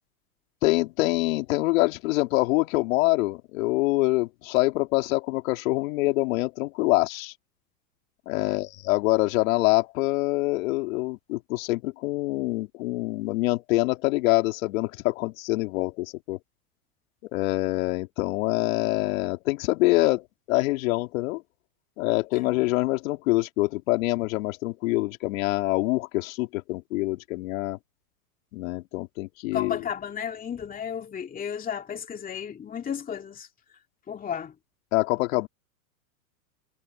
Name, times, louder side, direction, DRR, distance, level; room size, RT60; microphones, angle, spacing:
voice 1, 0.6-7.3 8.3-16.4 17.3-21.4 22.0-27.8 28.5-29.8 34.9-35.5, left 21 dB, 60° left, 3.0 m, -25 dB
voice 2, 29.5-33.5 34.1-34.5, left 8 dB, 20° left, 2.5 m, -33 dB
hypercardioid pair, 125°, 46 cm